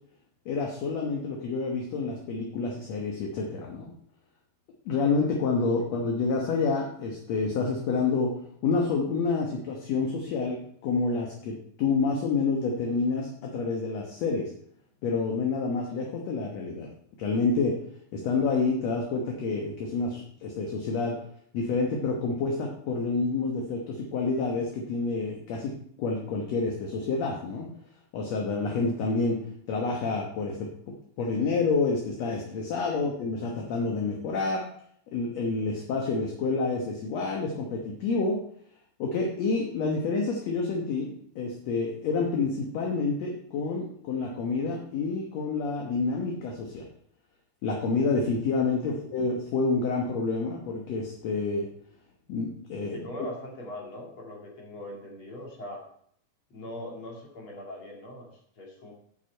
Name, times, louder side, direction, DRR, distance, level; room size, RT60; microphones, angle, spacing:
voice 1, 0.5-3.9 4.9-8.3 8.6-14.5 15.0-16.9 17.2-17.7 18.1-21.2 21.5-25.7 26.0-27.7 28.1-29.4 29.7-30.7 31.2-34.6 35.1-38.4 39.0-46.9 47.6-51.7 52.3-53.0, left 4 dB, 60° left, 0 dB, 2.0 m, -28 dB
voice 2, 52.9-55.8 56.5-58.9, left 1 dB, 40° left, -1 dB, 2.8 m, -41 dB
8.6 x 8.1 x 4.5 m, 0.65 s
omnidirectional pair, 4.0 m